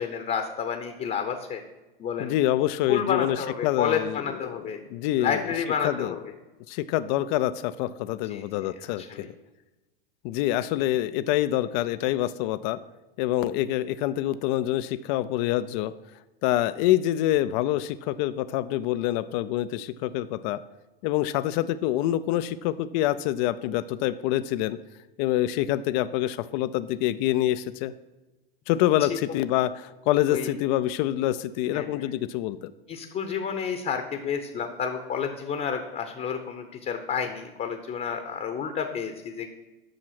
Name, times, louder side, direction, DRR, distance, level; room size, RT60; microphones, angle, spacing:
voice 1, 0.0-1.6 2.0-2.3 2.9-4.8 5.2-6.3 8.2-8.4 8.8-9.3 30.3-30.5 31.7-32.1 32.9-39.5, left 7 dB, 30° left, 7 dB, 0.8 m, -30 dB
voice 2, 2.2-3.4 3.6-4.5 4.9-5.4 5.8-6.2 6.7-9.3 10.2-12.8 13.2-15.9 16.4-20.6 21.0-24.8 25.2-27.9 28.7-32.7, left 14 dB, 50° left, 14 dB, 0.4 m, -26 dB
7.7 x 6.1 x 5.9 m, 1.1 s
hypercardioid pair, 100°, 29 cm